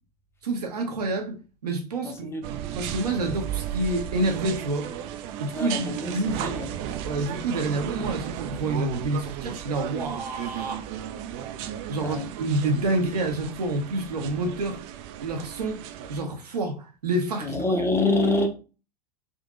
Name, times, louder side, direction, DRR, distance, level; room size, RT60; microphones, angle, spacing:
voice 1, 0.4-1.3 1.6-2.4 2.7-4.9 5.4-6.5 7.0-10.8 11.9-14.8 15.2-15.8 16.1-17.6, right 2 dB, 75° right, 0.8 m, -28 dB
voice 2, 2.0-2.5 5.5-6.7 12.0-12.2 17.4-18.5, left 2 dB, 10° left, 0.7 m, -26 dB
sound 1, 2.4-16.2, right 10 dB, 40° right, 0.4 m, -35 dB
3.7 x 2.6 x 2.4 m
figure-of-eight pair, 85°, 20 cm